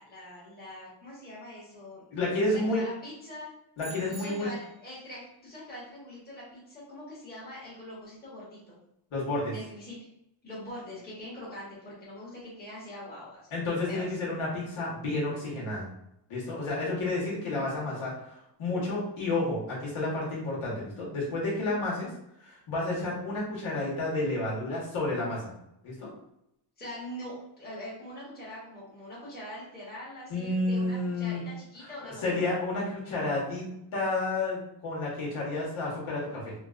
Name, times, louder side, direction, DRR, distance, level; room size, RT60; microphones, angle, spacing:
voice 1, 0.0-2.0 2.4-3.5 4.1-8.8 9.5-10.0 10.4-13.4 13.9-14.1 26.8-32.4, left 1 dB, 20° left, -7 dB, 1.3 m, -43 dB
voice 2, 2.1-2.8 3.8-4.5 9.1-9.5 13.5-15.9 16.3-22.1 22.4-25.5 25.8-26.1 30.3-31.4 32.0-33.6 33.9-36.5, left 2 dB, 75° left, -5 dB, 1.3 m, -30 dB
sound 1, 3.8-4.9, right 5 dB, 45° right, 0.8 m, -48 dB
3.7 x 2.3 x 2.4 m, 0.81 s
cardioid pair, 130°, 49 cm